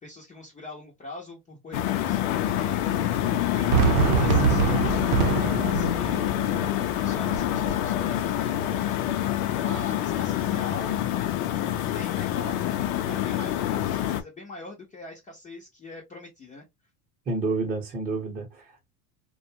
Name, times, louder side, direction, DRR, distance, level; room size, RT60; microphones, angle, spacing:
voice 1, 0.0-6.3 6.9-8.7 9.6-11.0 11.6-12.7 13.0-16.6, left 2 dB, 20° left, 0.7 m, -43 dB
sound 1, 1.7-14.2, left 12 dB, 65° left, 0.6 m, -26 dB
Fireworks, 3.7-8.8, right 7 dB, 65° right, 0.7 m, -26 dB
voice 2, 17.3-18.9, right 3 dB, 20° right, 1.0 m, -29 dB
2.5 x 2.2 x 2.7 m
supercardioid pair, 135°, 42 cm